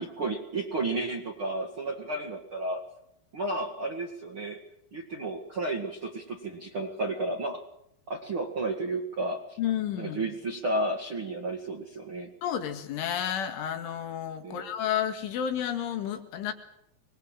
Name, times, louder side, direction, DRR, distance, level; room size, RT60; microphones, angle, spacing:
voice 1, 0.2-2.8 3.3-4.6 4.9-7.6 8.1-9.6 10.0-12.3 14.4-14.7, right 2 dB, 45° right, 1 dB, 1.8 m, -32 dB
voice 2, 9.6-10.3 12.4-16.5, left 9 dB, 75° left, 7 dB, 4.5 m, -31 dB
26.0 x 21.5 x 7.7 m, 0.78 s
omnidirectional pair, 5.7 m